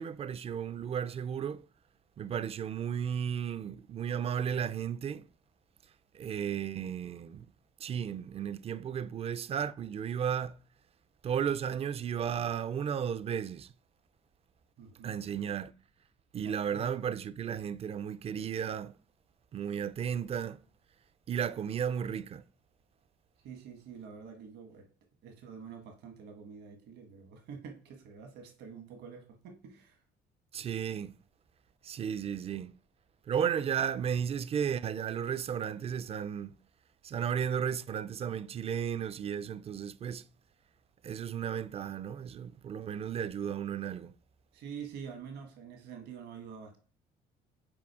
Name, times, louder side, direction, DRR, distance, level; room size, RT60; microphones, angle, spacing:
voice 1, 0.0-1.6 2.2-5.3 6.1-7.5 7.8-10.6 11.2-13.7 15.0-15.7 16.3-18.9 19.5-20.6 21.3-22.4 30.5-31.1 31.8-32.7 33.3-36.5 37.0-40.2 41.0-44.1, right 8 dB, 35° right, 0.4 m, -34 dB
voice 2, 14.8-15.3 16.4-16.8 23.4-24.8 25.2-30.0 44.5-46.8, right 6 dB, 80° right, 1.6 m, -47 dB
6.1 x 4.2 x 4.8 m
cardioid pair, 110°, 17 cm